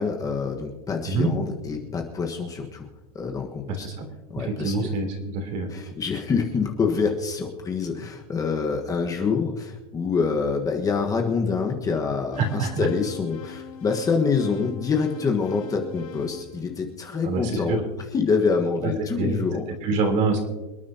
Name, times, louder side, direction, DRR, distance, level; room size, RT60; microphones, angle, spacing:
voice 1, 0.0-2.9 3.1-4.0 4.3-4.9 5.7-19.7, left 5 dB, 20° left, 2 dB, 1.5 m, -26 dB
voice 2, 4.4-5.7 12.4-12.9 17.2-17.8 19.2-19.4 19.8-20.4, right 4 dB, 40° right, 4 dB, 3.6 m, -25 dB
sound 1, 12.3-17.5, left 8 dB, 80° left, 4.2 m, -43 dB
27.5 x 9.3 x 2.9 m, 1.1 s
supercardioid pair, 135°, 19 cm